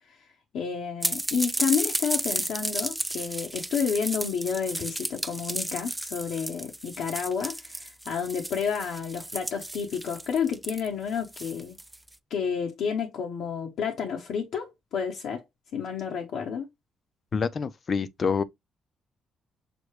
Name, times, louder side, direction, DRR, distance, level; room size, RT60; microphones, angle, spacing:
voice 1, 0.5-11.8 12.3-15.4 15.7-16.7, left 6 dB, 75° left, 1.0 m, -30 dB
sound 1, 1.0-12.1, right 1 dB, 10° right, 0.4 m, -33 dB
voice 2, 17.3-18.4, left 5 dB, 45° left, 0.6 m, -27 dB
6.2 x 2.2 x 3.3 m
cardioid pair, 90°, 0 cm